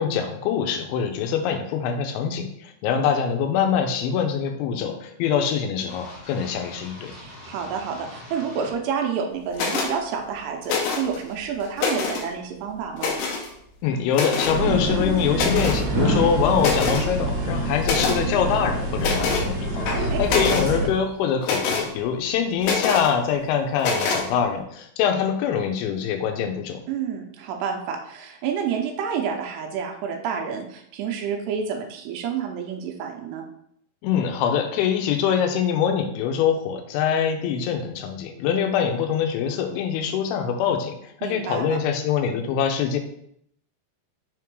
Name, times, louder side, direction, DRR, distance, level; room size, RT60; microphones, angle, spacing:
voice 1, 0.0-7.1 13.8-26.8 34.0-40.9 41.2-43.0, left 7 dB, 85° left, 6 dB, 3.0 m, -24 dB
sound 1, 5.9-8.7, left 1 dB, 35° left, 0.9 m, -43 dB
voice 2, 7.1-13.1 20.1-20.9 26.9-33.4 41.2-41.8, right 7 dB, 80° right, 2 dB, 2.5 m, -29 dB
sound 2, 9.5-9.9 10.6-11.2 11.6-12.3 13.0-13.5 14.1-14.6 15.3-15.8 16.2-16.3 16.6-17.1 17.8-18.2 19.0-19.5 19.9-20.7 21.4-21.9 22.6-23.1 23.8-24.2, left 4 dB, 70° left, 2.5 m, -25 dB
sound 3, 14.5-20.9, right 1 dB, 45° right, 3.1 m, -25 dB
6.7 x 3.6 x 4.6 m, 0.71 s
omnidirectional pair, 5.4 m